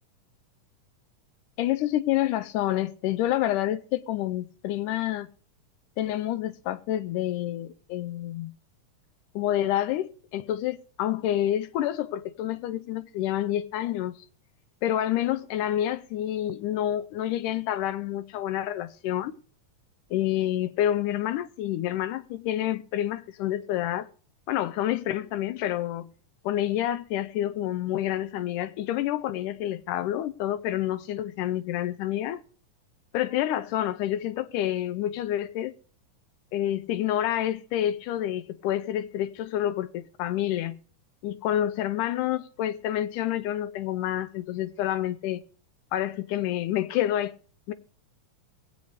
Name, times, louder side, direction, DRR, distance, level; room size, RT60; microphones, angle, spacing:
voice 1, 1.6-5.3 6.0-8.5 9.4-14.1 14.8-19.4 20.1-24.1 24.5-26.1 26.4-32.4 33.1-35.7 36.5-40.8 41.2-45.4 45.9-47.3 47.7-47.8, left 12 dB, 80° left, 2.2 m, -28 dB
22.0 x 8.0 x 3.4 m
omnidirectional pair, 3.7 m